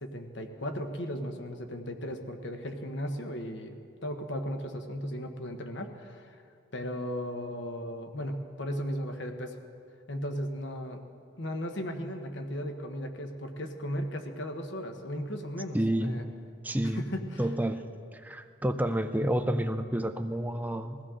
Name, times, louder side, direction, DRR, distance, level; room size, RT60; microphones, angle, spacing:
voice 1, 0.0-6.3 6.7-9.5 10.1-11.0 11.4-16.2 16.8-17.4, equal, 65° left, 5 dB, 1.1 m, -36 dB
voice 2, 15.7-16.2 16.6-17.1 17.4-17.8 18.1-21.0, right 1 dB, 10° right, 8 dB, 0.5 m, -29 dB
21.0 x 16.0 x 3.8 m, 2.5 s
head